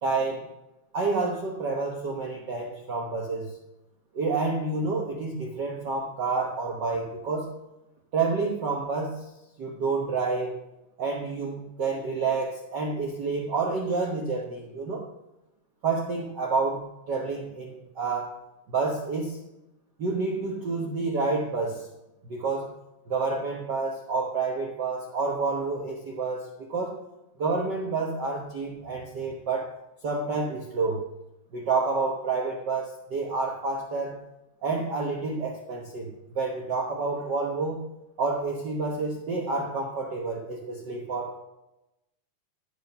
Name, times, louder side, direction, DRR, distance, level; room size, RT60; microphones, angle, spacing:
voice 1, 0.0-0.5 0.9-3.6 4.1-7.5 8.1-9.3 9.6-10.5 11.0-15.0 15.8-18.4 18.7-19.4 20.0-21.9 22.2-22.7 23.1-27.0 27.4-29.7 30.0-31.0 31.5-34.2 34.6-37.8 38.2-41.4, right 4 dB, 85° right, 0 dB, 0.9 m, -29 dB
13.0 x 5.1 x 5.4 m, 0.93 s
omnidirectional pair, 3.7 m